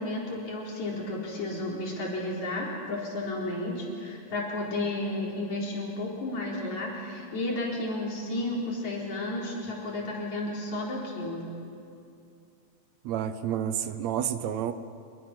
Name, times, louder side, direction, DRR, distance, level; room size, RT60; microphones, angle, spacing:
voice 1, 0.0-11.4, left 2 dB, 70° left, -3 dB, 5.4 m, -32 dB
voice 2, 13.0-14.7, right 9 dB, 75° right, 11 dB, 1.9 m, -30 dB
25.5 x 23.5 x 6.0 m, 2.6 s
omnidirectional pair, 3.4 m